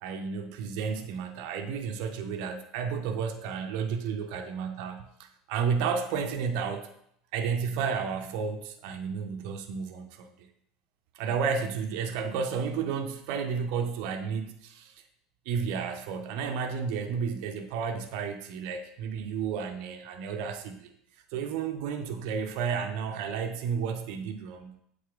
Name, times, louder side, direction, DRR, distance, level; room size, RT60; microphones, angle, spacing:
voice 1, 0.0-6.9 7.3-10.5 11.1-15.0 15.5-20.9 21.3-24.8, right 6 dB, 60° right, 5 dB, 0.5 m, -32 dB
7.4 x 4.1 x 3.5 m, 0.70 s
figure-of-eight pair, 70°, 0 cm